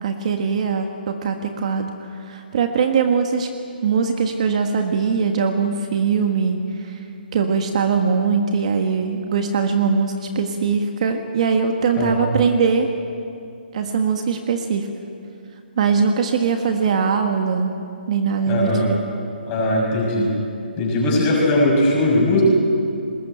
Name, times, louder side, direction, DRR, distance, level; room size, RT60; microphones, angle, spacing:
voice 1, 0.0-3.5 3.8-7.0 7.3-12.9 13.7-14.9 15.8-17.7 18.1-18.7, right 5 dB, 40° right, 5 dB, 1.5 m, -21 dB
voice 2, 12.0-12.3 18.5-18.9 19.5-20.3 20.8-22.4, left 1 dB, 20° left, -3 dB, 6.2 m, -19 dB
20.5 x 19.5 x 9.1 m, 2.5 s
hypercardioid pair, 165°, 5 cm